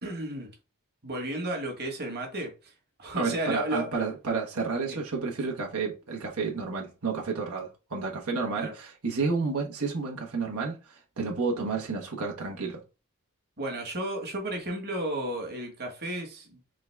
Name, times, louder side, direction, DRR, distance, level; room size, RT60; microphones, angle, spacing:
voice 1, 0.0-0.5 1.0-2.7 3.0-3.9 4.9-5.0 8.5-8.7 13.6-16.6, right 1 dB, 50° right, 1.5 m, -33 dB
voice 2, 3.2-12.8, right 4 dB, 90° right, 1.2 m, -31 dB
3.9 x 3.5 x 3.4 m
head